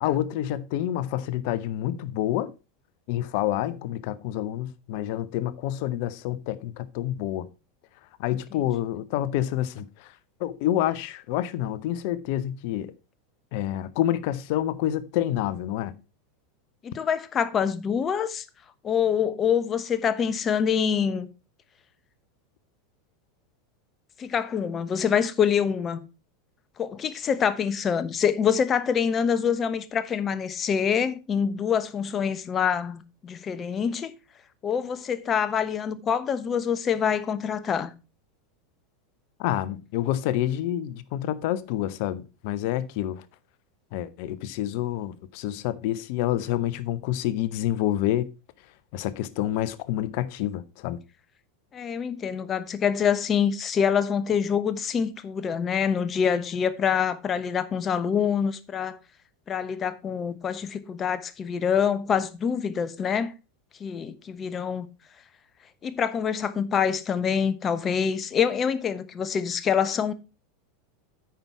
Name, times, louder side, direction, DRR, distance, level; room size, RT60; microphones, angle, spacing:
voice 1, 0.0-2.5 3.1-7.5 8.2-10.1 10.4-12.9 13.5-15.9 39.4-43.2 43.9-48.3 48.9-51.0, left 12 dB, 55° left, 0.8 m, -28 dB
voice 2, 16.8-18.4 18.8-21.3 24.2-26.0 26.8-34.1 34.6-37.9 51.7-59.0 59.5-63.3 63.8-64.9 65.8-70.1, left 7 dB, 30° left, 1.0 m, -25 dB
9.0 x 5.8 x 4.6 m
figure-of-eight pair, 85°, 0 cm